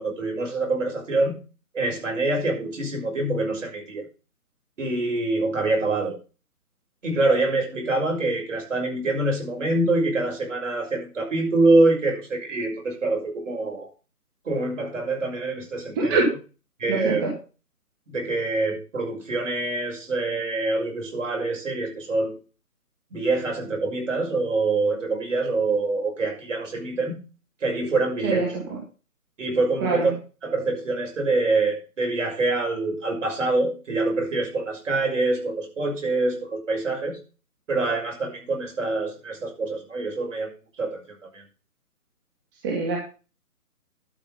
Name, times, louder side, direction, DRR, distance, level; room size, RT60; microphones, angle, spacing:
voice 1, 0.0-1.3 1.7-4.0 4.8-6.2 7.0-13.9 14.4-16.2 16.8-17.2 18.1-22.3 23.1-27.2 27.6-28.5 29.4-30.1 30.4-37.2 37.7-40.5 40.8-41.0 41.3-41.4, right 2 dB, 55° right, 0 dB, 6.0 m, -25 dB
voice 2, 16.9-17.3 28.2-28.8 29.8-30.1 42.6-43.0, right 3 dB, 15° right, -2 dB, 1.7 m, -24 dB
12.0 x 6.3 x 5.4 m, 0.34 s
hypercardioid pair, 165°, 45 cm